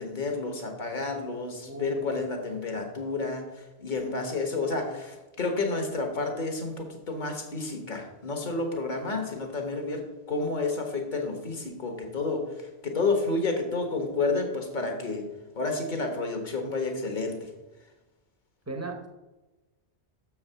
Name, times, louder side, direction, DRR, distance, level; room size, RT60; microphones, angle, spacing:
voice 1, 0.0-15.2 15.5-17.5, left 3 dB, 45° left, 3 dB, 1.4 m, -30 dB
voice 2, 1.6-2.1 18.7-19.1, right 3 dB, 15° right, 3 dB, 0.9 m, -37 dB
6.8 x 4.8 x 6.7 m, 1.1 s
omnidirectional pair, 1.2 m